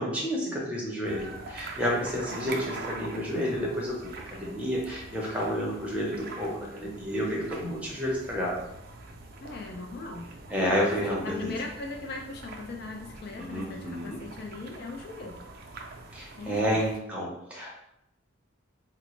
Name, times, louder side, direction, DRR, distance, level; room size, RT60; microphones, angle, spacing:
voice 1, 0.0-8.6 10.5-11.5 13.3-14.2 16.1-17.7, equal, 5° right, -4 dB, 0.7 m, -30 dB
sound 1, 1.0-17.0, right 3 dB, 45° right, 0.4 m, -44 dB
voice 2, 2.3-2.7 9.4-10.3 10.6-15.5 16.4-16.8, left 3 dB, 50° left, 2 dB, 0.3 m, -39 dB
3.9 x 2.1 x 3.0 m, 0.80 s
head